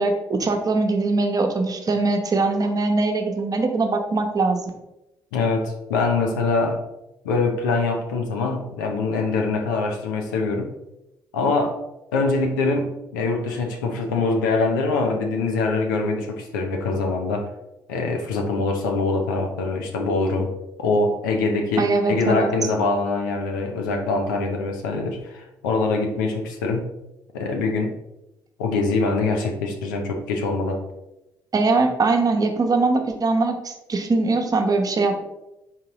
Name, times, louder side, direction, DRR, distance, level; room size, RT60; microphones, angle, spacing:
voice 1, 0.0-4.6 21.8-22.5 31.5-35.2, right 3 dB, 40° right, 5 dB, 0.8 m, -21 dB
voice 2, 5.3-6.8 7.2-10.8 11.3-11.8 12.1-17.5 17.9-20.5 20.8-26.9 27.3-28.0 28.6-30.8, left 3 dB, 85° left, 2 dB, 0.6 m, -23 dB
4.3 x 3.8 x 2.9 m, 0.92 s
hypercardioid pair, 45°, 10 cm